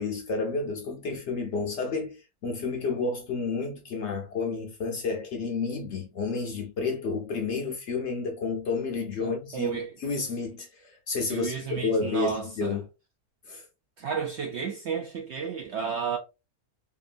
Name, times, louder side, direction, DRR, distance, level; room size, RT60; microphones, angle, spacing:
voice 1, 0.0-12.8 13.4-13.7, left 4 dB, 65° left, 0.7 m, -31 dB
voice 2, 9.2-9.9 11.3-12.8 14.0-16.2, right 6 dB, 70° right, 0.6 m, -32 dB
2.8 x 2.5 x 2.4 m
omnidirectional pair, 1.6 m